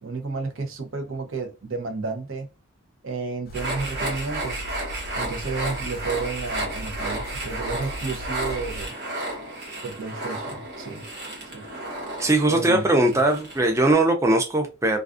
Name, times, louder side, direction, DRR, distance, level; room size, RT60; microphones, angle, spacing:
voice 1, 0.0-2.5 3.0-4.6 5.2-8.9 9.8-11.0 11.5-11.7 12.5-12.8 13.1-13.2, right 4 dB, 80° right, 0.6 m, -32 dB
sound 1, 3.4-8.9, equal, 50° left, 0.4 m, -38 dB
sound 2, 3.5-13.9, right 1 dB, 55° right, 1.0 m, -33 dB
voice 2, 12.2-15.0, right 2 dB, 15° right, 0.4 m, -20 dB
2.4 x 2.3 x 2.4 m
head